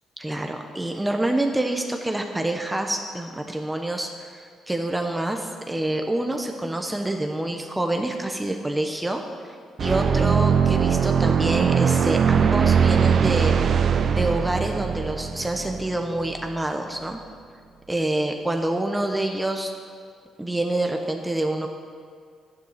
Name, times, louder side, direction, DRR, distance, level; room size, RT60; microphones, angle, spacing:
voice 1, 0.2-9.2 9.8-13.6 14.0-17.2 17.9-19.7 20.4-21.7, right 1 dB, 10° right, 3 dB, 1.0 m, -27 dB
sound 1, 9.8-16.5, right 7 dB, 55° right, 0.7 m, -21 dB
12.0 x 10.5 x 5.8 m, 2.1 s
cardioid pair, 90°, 0 cm